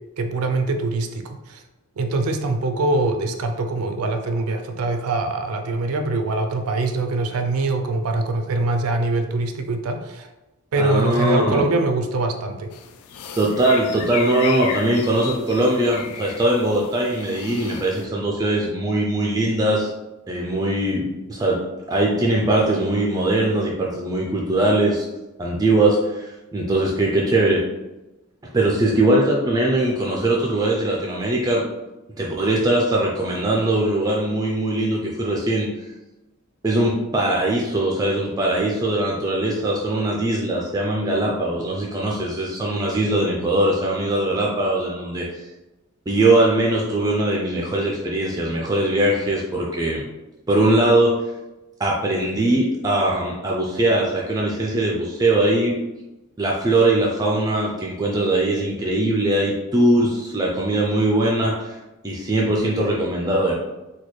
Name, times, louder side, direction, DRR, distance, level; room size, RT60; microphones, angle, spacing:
voice 1, 0.2-1.6 2.0-10.3 10.7-12.7, right 2 dB, 85° right, 6 dB, 0.4 m, -23 dB
voice 2, 10.8-11.7 13.4-19.9 20.3-21.6 21.9-25.0 25.4-27.6 28.5-31.6 32.2-35.7 36.6-45.3 46.1-50.0 50.5-51.2 51.8-55.8 56.4-61.8 62.0-63.5, right 1 dB, 15° right, -2 dB, 0.3 m, -21 dB
sound 1, 12.7-18.1, left 7 dB, 85° left, 0.4 m, -35 dB
4.0 x 2.3 x 3.0 m, 1.0 s
head